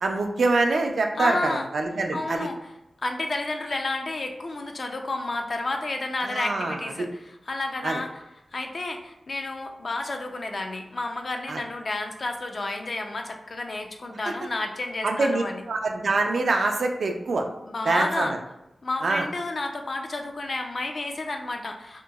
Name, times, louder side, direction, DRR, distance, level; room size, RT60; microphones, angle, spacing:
voice 1, 0.0-2.4 6.3-7.1 7.8-8.0 11.5-11.6 14.2-14.3 15.0-17.4 17.9-18.3 19.0-19.3, right 3 dB, 70° right, 4 dB, 0.3 m, -25 dB
voice 2, 1.2-1.7 2.1-2.7 3.0-8.2 8.5-15.6 17.6-18.3 18.8-22.0, left 2 dB, 50° left, 4 dB, 0.3 m, -31 dB
2.9 x 2.6 x 2.3 m, 0.90 s
wide cardioid pair, 90°, 0 cm